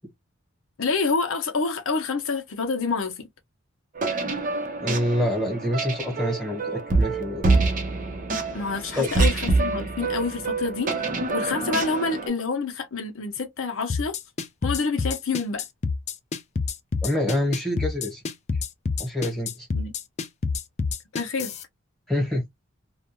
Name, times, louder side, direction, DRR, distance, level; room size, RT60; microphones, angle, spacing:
voice 1, 0.8-3.3 8.5-10.9 11.3-14.2 14.6-15.6 19.7-19.9 21.1-21.6, left 4 dB, 70° left, 0.6 m, -27 dB
sound 1, 4.0-12.3, right 3 dB, 35° right, 0.6 m, -26 dB
voice 2, 4.8-7.5 8.9-9.1 17.0-18.2 19.0-19.7 22.1-22.5, left 1 dB, ahead, 1.1 m, -26 dB
sound 2, 13.9-21.6, left 4 dB, 30° left, 0.3 m, -27 dB
2.4 x 2.2 x 2.8 m
head